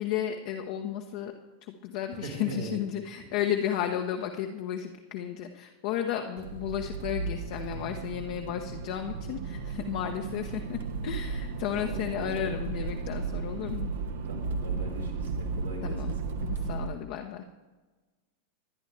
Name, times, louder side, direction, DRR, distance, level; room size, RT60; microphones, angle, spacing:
voice 1, 0.0-1.3 1.6-13.9 15.8-17.5, left 10 dB, 50° left, 3 dB, 1.0 m, -33 dB
voice 2, 2.1-2.8 11.7-12.6 14.2-16.4, right 1 dB, 85° right, -5 dB, 3.4 m, -39 dB
Accelerating revving vroom, 6.4-16.9, right 4 dB, 60° right, 1.1 m, -34 dB
24.5 x 10.5 x 3.4 m, 1.2 s
figure-of-eight pair, 90°, 0 cm